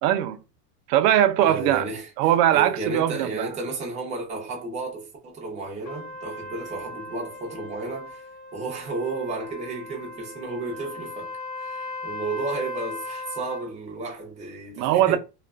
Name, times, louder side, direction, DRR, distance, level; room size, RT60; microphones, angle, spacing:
voice 1, 0.0-0.4 0.9-1.8 2.2-3.5 14.8-15.2, right 12 dB, 85° right, 0.6 m, -20 dB
voice 2, 1.4-2.1 2.5-8.3 8.5-15.2, right 3 dB, 15° right, 0.5 m, -33 dB
Trumpet, 5.8-13.7, left 2 dB, 55° left, 0.6 m, -38 dB
2.4 x 2.3 x 2.2 m
supercardioid pair, 155°, 48 cm